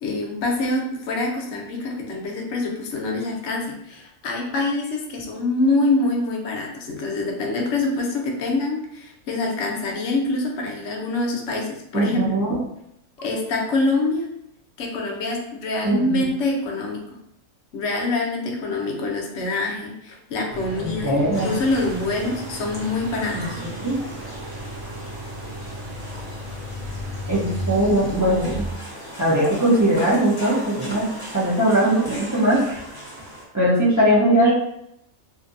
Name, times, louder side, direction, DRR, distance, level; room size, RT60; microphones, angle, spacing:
voice 1, 0.0-12.3 13.2-14.3 14.8-17.1 17.7-21.1 21.4-23.6, left 2 dB, 65° left, 0 dB, 0.9 m, -25 dB
voice 2, 11.9-12.6 15.8-16.3 20.8-21.5 23.3-24.0 27.3-28.6 29.2-31.0 31.3-32.8 33.5-34.5, right 1 dB, 25° right, -8 dB, 0.3 m, -20 dB
sound 1, 20.5-28.8, right 1 dB, 70° right, 1.0 m, -34 dB
sound 2, 21.3-33.4, right 1 dB, 25° left, 0.5 m, -37 dB
2.5 x 2.5 x 2.5 m, 0.77 s
omnidirectional pair, 1.4 m